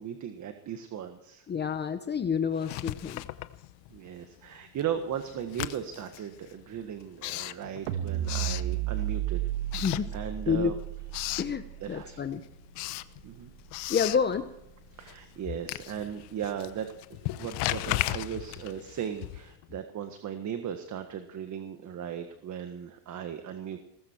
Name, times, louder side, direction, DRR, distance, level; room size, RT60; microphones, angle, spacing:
voice 1, 0.0-1.4 3.9-9.4 9.7-10.7 11.8-12.3 13.2-13.5 14.9-23.8, right 8 dB, 40° right, 7 dB, 1.6 m, -37 dB
voice 2, 1.5-3.3 9.7-10.1 10.5-10.7 11.4-12.4 13.9-14.5, left 6 dB, 25° left, 9 dB, 0.9 m, -29 dB
Writing, 2.6-4.1 4.4-9.2 9.6-10.6 10.9-11.6 12.0-19.7, left 18 dB, 65° left, 1.0 m, -36 dB
Bass Drop Pitch Sweep FX, 7.9-14.2, right 13 dB, 75° right, 1.6 m, -34 dB
19.0 x 15.0 x 4.6 m, 0.83 s
supercardioid pair, 120°, 45 cm